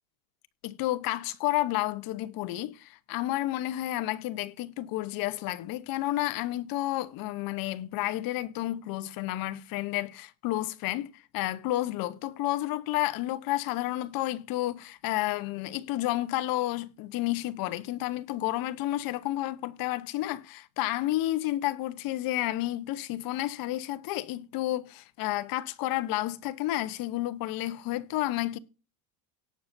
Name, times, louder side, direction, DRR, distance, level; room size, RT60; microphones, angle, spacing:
voice 1, 0.6-28.6, left 15 dB, 55° left, 1.0 m, -31 dB
18.0 x 6.6 x 2.7 m
supercardioid pair, 120°, 42 cm